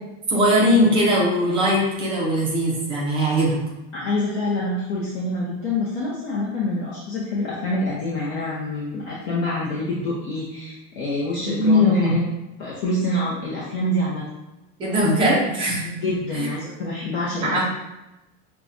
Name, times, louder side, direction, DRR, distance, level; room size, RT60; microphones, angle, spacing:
voice 1, 0.3-3.6 11.4-12.2 14.8-15.9 16.3-16.5 17.4-17.6, equal, 15° right, -4 dB, 0.5 m, -20 dB
voice 2, 3.9-12.2 12.6-14.2 16.0-17.6, left 1 dB, 40° left, -7 dB, 0.7 m, -26 dB
5.4 x 2.3 x 2.5 m, 0.98 s
supercardioid pair, 175°, 37 cm